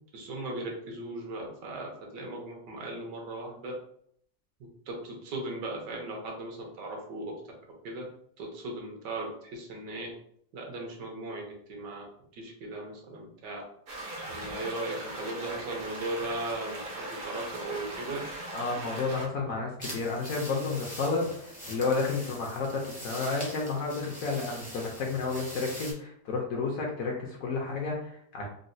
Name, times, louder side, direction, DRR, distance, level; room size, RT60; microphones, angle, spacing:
voice 1, 0.1-3.7 4.9-7.2 7.8-8.0 8.4-10.1 10.5-12.0 12.3-13.6 14.3-18.2, right 2 dB, 80° right, 0 dB, 1.4 m, -37 dB
sound 1, 13.9-19.3, right 1 dB, 60° right, 0.5 m, -39 dB
voice 2, 18.5-28.5, left 4 dB, 70° left, -1 dB, 0.8 m, -31 dB
sound 2, 19.8-25.9, equal, 10° right, 0.4 m, -43 dB
3.9 x 2.1 x 2.6 m, 0.68 s
omnidirectional pair, 1.9 m